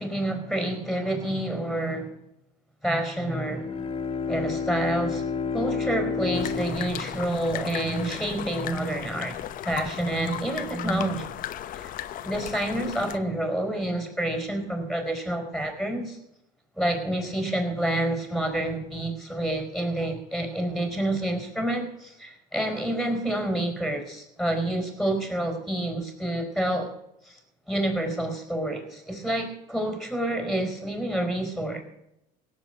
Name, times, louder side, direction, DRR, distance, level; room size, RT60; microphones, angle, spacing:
voice 1, 0.0-2.1 2.8-3.6 4.3-5.2 5.5-9.4 9.6-11.3 11.7-11.9 12.2-16.2 16.8-26.9 27.2-27.4 27.7-31.8, right 1 dB, ahead, 4 dB, 4.3 m, -28 dB
Bowed string instrument, 3.2-8.0, left 5 dB, 30° left, 2.0 m, -31 dB
sound 1, 6.3-13.2, left 11 dB, 50° left, 1.0 m, -36 dB
17.0 x 7.7 x 7.7 m, 0.83 s
supercardioid pair, 105°, 18 cm